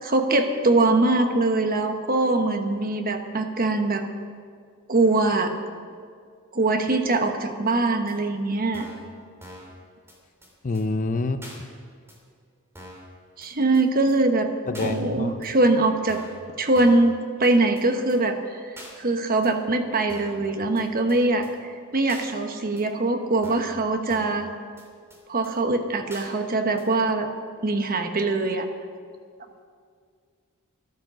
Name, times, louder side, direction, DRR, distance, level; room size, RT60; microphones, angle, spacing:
voice 1, 0.0-4.1 4.9-5.5 6.5-8.9 13.4-14.5 14.8-16.2 16.6-17.1 17.4-24.5 25.3-27.3 27.6-28.7, right 2 dB, 40° right, 6 dB, 1.1 m, -22 dB
sound 1, 8.1-8.2 8.7-9.1 9.4-9.7 10.1-10.2 10.4-10.5 10.7-10.8 11.4-11.6 12.1-12.2 12.7-13.1 13.4-13.5 13.7-13.8 14.1-14.2 14.7-14.9 15.4-15.5 16.1-16.4 16.7-17.1 17.4-17.5 17.8-17.9 18.1-18.2 18.8-18.9 19.4-19.5 20.1-20.4 20.8-20.9 21.1-21.2 21.4-21.5 22.1-22.3 22.8-22.9 23.4-23.8 24.1-24.4 24.8-24.9 25.1-25.2 25.4-25.5 26.1-26.3 26.8-26.9, equal, 10° right, 2.9 m, -43 dB
voice 2, 10.6-11.4 14.7-15.4, left 3 dB, 35° left, 10 dB, 0.6 m, -27 dB
13.5 x 12.0 x 6.2 m, 2.1 s
head